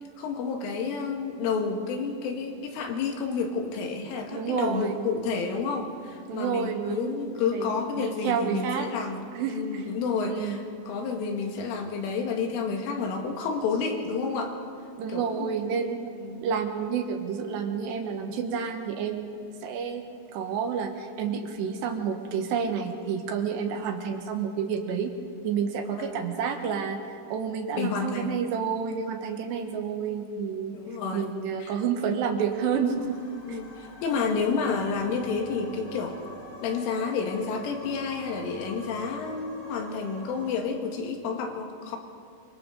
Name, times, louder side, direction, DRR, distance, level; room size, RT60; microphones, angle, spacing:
voice 1, 0.2-14.5 15.1-16.5 23.6-23.7 26.0-26.3 27.8-28.4 30.7-31.3 31.6-31.7 33.5-36.3 36.6-42.0, left 5 dB, 85° left, 2 dB, 4.4 m, -30 dB
voice 2, 4.0-5.0 6.3-8.9 9.3-9.9 10.2-10.6 15.0-16.1 16.4-20.0 20.3-25.1 25.4-30.8 31.1-33.2 33.5-33.6, right 6 dB, 70° right, 4 dB, 3.1 m, -30 dB
sound 1, 32.5-40.5, left 2 dB, 55° left, 4.0 m, -45 dB
28.0 x 24.5 x 4.0 m, 2.5 s
omnidirectional pair, 5.6 m